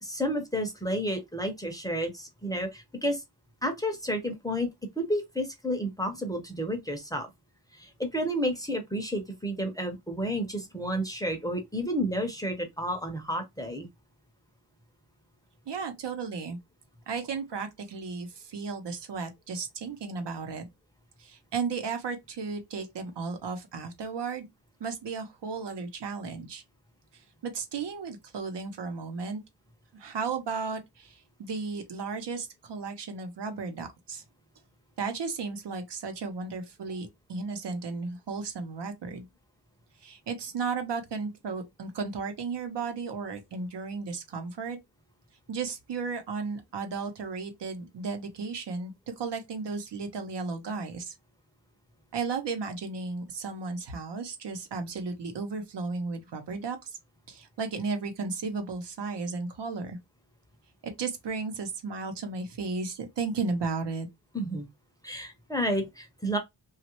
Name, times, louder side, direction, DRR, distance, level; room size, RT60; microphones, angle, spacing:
voice 1, 0.0-3.2 3.6-4.7 5.0-7.3 7.7-13.9 64.3-64.7 65.0-66.4, equal, 10° left, 0.5 m, -31 dB
voice 2, 15.7-16.6 17.1-20.7 21.2-24.5 24.8-26.6 27.4-29.4 29.9-34.2 35.0-39.3 40.0-44.8 45.5-51.1 52.1-56.9 57.3-60.0 60.8-64.1, right 4 dB, 80° right, 0.9 m, -34 dB
3.0 x 2.4 x 2.9 m
wide cardioid pair, 170°, 41 cm